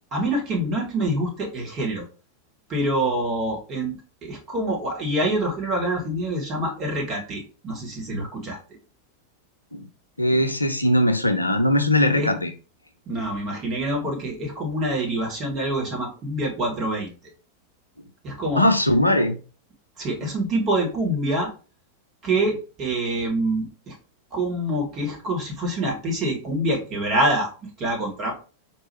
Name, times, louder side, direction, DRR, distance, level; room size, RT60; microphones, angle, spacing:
voice 1, 0.1-2.0 2.7-8.6 12.1-12.3 13.1-17.1 18.2-18.6 20.0-21.5 22.2-23.9 24.3-27.5 27.8-28.3, right 1 dB, 30° right, 0 dB, 1.7 m, -26 dB
voice 2, 10.2-12.5 18.6-19.4 20.2-20.3, left 1 dB, 85° left, 7 dB, 0.5 m, -20 dB
4.4 x 3.0 x 3.1 m, 0.35 s
figure-of-eight pair, 90°, 0 cm